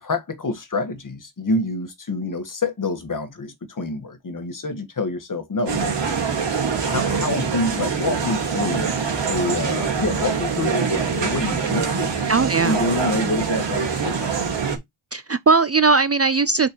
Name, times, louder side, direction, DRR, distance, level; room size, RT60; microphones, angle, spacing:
voice 1, 0.0-6.0 6.8-12.3 12.6-14.3, left 2 dB, 40° left, 1.8 m, -27 dB
sound 1, 5.7-14.8, right 6 dB, 60° right, 2.9 m, -24 dB
voice 2, 12.3-12.8 15.1-16.7, right 4 dB, 35° right, 0.5 m, -18 dB
6.5 x 5.5 x 3.1 m
wide cardioid pair, 145°, 47 cm